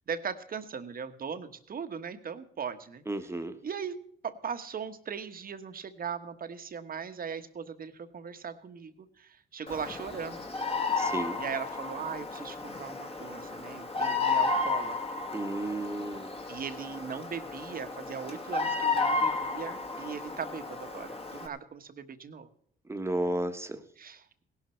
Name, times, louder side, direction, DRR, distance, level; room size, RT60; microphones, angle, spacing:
voice 1, 0.1-3.0 3.6-3.9 4.2-10.5 11.4-15.2 16.5-22.5 24.0-24.4, right 6 dB, 45° right, 10 dB, 1.3 m, -39 dB
voice 2, 3.1-3.5 11.0-11.4 15.3-16.4 22.9-23.8, right 1 dB, 15° right, 8 dB, 1.4 m, -33 dB
Bird vocalization bird call bird song, 9.7-21.5, left 4 dB, 30° left, 1.9 m, -32 dB
17.5 x 11.5 x 4.5 m, 0.66 s
cardioid pair, 90°, 20 cm